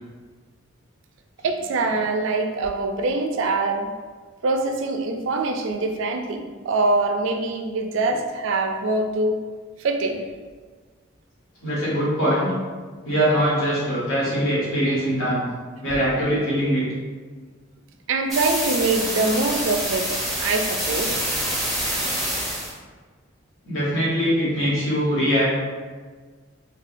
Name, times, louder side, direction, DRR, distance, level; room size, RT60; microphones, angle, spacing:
voice 1, 1.4-3.9 4.4-9.4 9.8-10.2 18.1-21.2, right 3 dB, 65° right, 5 dB, 0.3 m, -24 dB
voice 2, 11.6-12.5 13.0-15.4 15.8-16.8 23.6-25.4, equal, 80° left, -8 dB, 1.3 m, -22 dB
sound 1, 18.3-22.7, right 1 dB, ahead, 0.6 m, -26 dB
3.5 x 2.3 x 2.5 m, 1.5 s
head